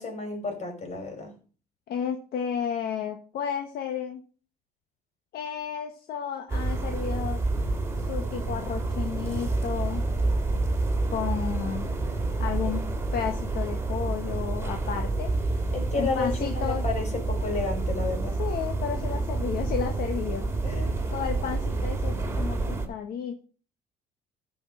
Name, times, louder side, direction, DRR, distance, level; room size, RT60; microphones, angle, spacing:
voice 1, 0.0-1.3 12.6-12.7 15.7-18.4 18.9-19.2 20.6-20.9, left 3 dB, 45° left, 4 dB, 5.1 m, -32 dB
voice 2, 1.9-4.2 5.3-7.4 8.0-10.0 11.1-11.9 12.4-15.3 16.0-16.8 18.4-20.5 21.1-23.4, left 8 dB, 65° left, 4 dB, 1.5 m, -32 dB
sound 1, 6.5-22.9, right 2 dB, 15° right, 2.6 m, -28 dB
14.5 x 5.7 x 5.6 m, 0.40 s
cardioid pair, 110°, 17 cm